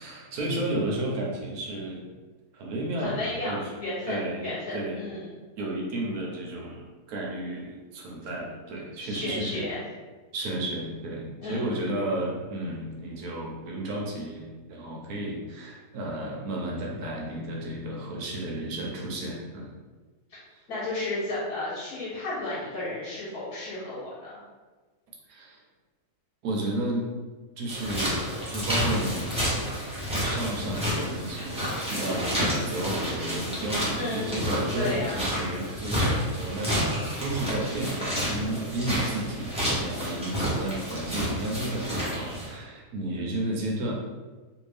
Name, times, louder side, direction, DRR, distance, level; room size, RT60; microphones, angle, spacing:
voice 1, 0.0-2.1 2.5-3.7 4.1-5.0 5.6-9.7 10.3-19.7 20.5-20.6 25.3-25.6 26.4-27.1 27.6-29.4 30.2-36.9 37.2-43.9, right 1 dB, 75° right, -2 dB, 1.1 m, -32 dB
voice 2, 3.0-5.3 9.0-9.8 11.4-12.0 20.7-24.4 33.9-34.4 34.8-35.2, left 2 dB, 80° left, -9 dB, 1.7 m, -33 dB
sound 1, 27.7-42.5, equal, 5° right, 0.7 m, -30 dB
3.0 x 2.6 x 3.3 m, 1.3 s
omnidirectional pair, 1.7 m